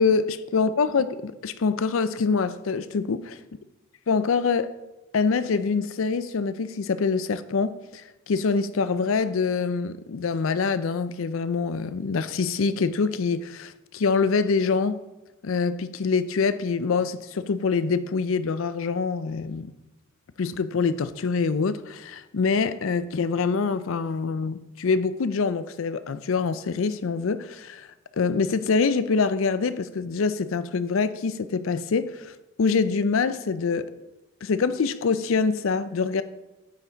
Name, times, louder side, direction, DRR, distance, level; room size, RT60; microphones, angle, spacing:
voice 1, 0.0-3.4 4.1-4.7 5.1-15.0 15.4-19.7 20.4-27.9 28.2-32.3 32.6-33.9 34.4-36.2, left 4 dB, 65° left, 0.5 m, -25 dB
9.3 x 5.7 x 4.0 m
head